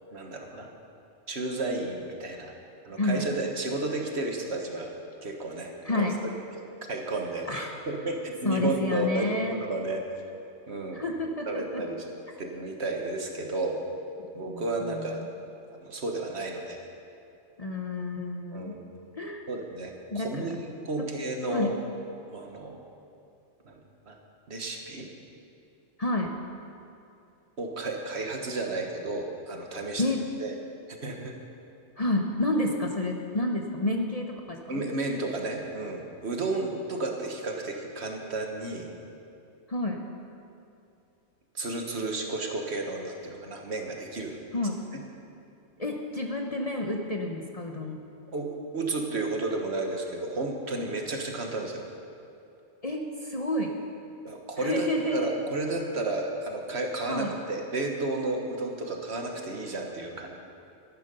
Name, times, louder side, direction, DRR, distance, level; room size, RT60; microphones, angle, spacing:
voice 1, 0.1-0.7 1.3-2.5 2.8-4.9 5.2-6.1 6.9-7.5 7.9-10.0 10.7-11.0 11.5-12.0 12.4-13.8 14.3-15.2 15.8-16.8 18.5-18.8 19.5-21.7 22.3-22.9 23.7-23.8 24.1-24.2 24.5-25.1 27.6-30.0 30.4-30.5 30.9-31.4 34.7-38.9 41.5-44.4 44.9-45.0 48.3-51.8 54.2-60.4, right 2 dB, 60° right, 2 dB, 1.5 m, -32 dB
voice 2, 3.0-3.3 5.8-6.2 7.5-7.7 8.4-9.6 10.9-11.8 14.4-15.3 17.6-18.8 19.1-19.4 20.1-20.6 21.0-21.1 21.5-21.7 26.0-26.3 30.0-30.2 32.0-34.8 39.7-40.0 44.5-44.8 45.8-48.0 52.8-53.7 54.6-55.4 57.1-57.3, left 1 dB, 35° left, 2 dB, 0.9 m, -30 dB
12.5 x 12.0 x 5.4 m, 2.7 s
omnidirectional pair, 1.3 m